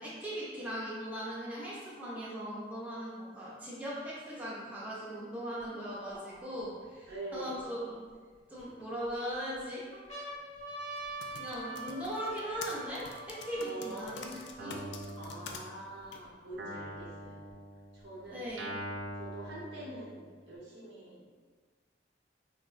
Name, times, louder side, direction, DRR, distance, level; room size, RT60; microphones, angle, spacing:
voice 1, 0.0-8.0 8.5-9.8 11.3-14.8 18.3-18.7, equal, 10° right, -8 dB, 0.4 m, -39 dB
sound 1, 5.6-5.7 6.4-7.6 8.3-9.1 9.6-9.7 9.9-15.5 16.3-16.4 16.5-17.5 18.5-19.5, right 2 dB, 40° left, 0.7 m, -45 dB
voice 2, 6.1-6.8 7.1-7.6 13.6-14.1 15.2-17.4 17.9-18.5 19.2-21.3, right 1 dB, 75° right, -6 dB, 0.8 m, -45 dB
Typing, 11.0-15.6 16.1-16.2, left 6 dB, 80° left, 0.3 m, -46 dB
Guitar, 14.6-16.1 16.6-20.5, right 1 dB, 90° right, 0.4 m, -44 dB
3.7 x 2.0 x 2.4 m, 1.5 s
head